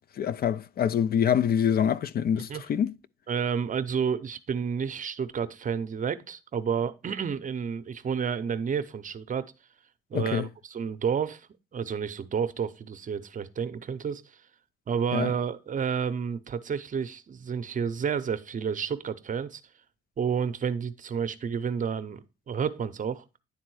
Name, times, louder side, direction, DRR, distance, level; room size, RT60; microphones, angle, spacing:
voice 1, 0.2-2.9 10.1-10.5 15.1-15.3, left 8 dB, 50° left, 0.4 m, -25 dB
voice 2, 3.3-9.5 10.1-11.4 11.7-14.2 14.9-19.6 20.2-23.2, right 7 dB, 40° right, 0.7 m, -30 dB
9.9 x 3.7 x 4.6 m
cardioid pair, 90°, 20 cm